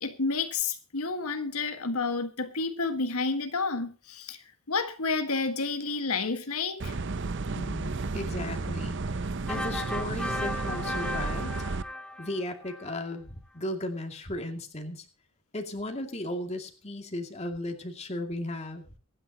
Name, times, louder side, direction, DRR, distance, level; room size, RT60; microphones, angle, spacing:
voice 1, 0.0-4.4 4.7-7.0, left 4 dB, 85° left, 1.6 m, -30 dB
sound 1, 6.8-11.8, right 3 dB, 55° right, 0.7 m, -33 dB
voice 2, 7.5-9.0 9.5-11.5 12.2-15.0 15.5-18.8, left 1 dB, 30° left, 2.3 m, -35 dB
sound 2, 9.5-12.9, left 1 dB, 5° left, 1.0 m, -36 dB
24.0 x 10.0 x 2.9 m
head